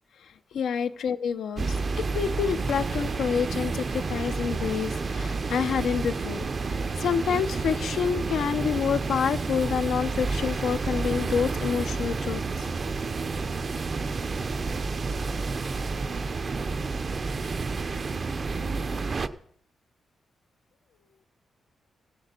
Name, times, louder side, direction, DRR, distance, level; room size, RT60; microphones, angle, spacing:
voice 1, 0.5-6.5 7.0-12.7, left 7 dB, 75° left, 0.8 m, -28 dB
sound 1, 1.6-19.3, right 4 dB, 30° right, 0.6 m, -30 dB
15.5 x 7.9 x 8.2 m
wide cardioid pair, 165°, 0 cm